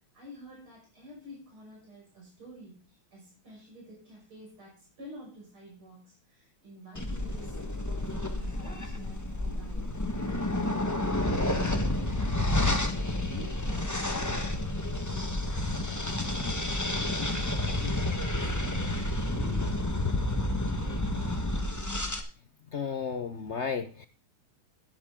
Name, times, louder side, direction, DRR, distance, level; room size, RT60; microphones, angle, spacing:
voice 1, 0.1-16.6 16.9-20.3 20.7-21.4 22.0-22.1, right 1 dB, 80° right, -3 dB, 6.9 m, -49 dB
sound 1, 6.9-22.2, left 1 dB, 10° left, 1.0 m, -30 dB
voice 2, 22.7-24.1, left 6 dB, 65° left, 9 dB, 0.6 m, -33 dB
12.5 x 10.5 x 3.7 m, 0.38 s
omnidirectional pair, 2.3 m